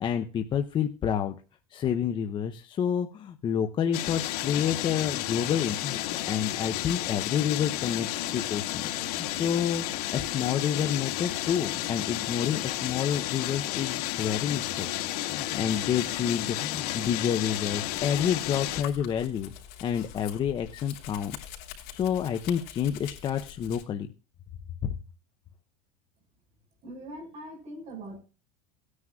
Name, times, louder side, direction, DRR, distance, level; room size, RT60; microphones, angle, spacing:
voice 1, 0.0-1.4 1.7-6.0 6.3-9.8 10.1-14.9 15.2-19.5 19.8-21.5 21.9-24.1 24.8-24.9, left 8 dB, 25° left, 6 dB, 0.6 m, -29 dB
sound 1, 3.9-18.8, left 14 dB, 85° left, 1.7 m, -32 dB
Domestic sounds home sounds, 17.9-23.8, left 10 dB, 55° left, 3.4 m, -45 dB
voice 2, 26.8-28.2, right 1 dB, 35° right, 3 dB, 5.3 m, -41 dB
18.0 x 9.7 x 2.3 m, 0.34 s
cardioid pair, 160°, 19 cm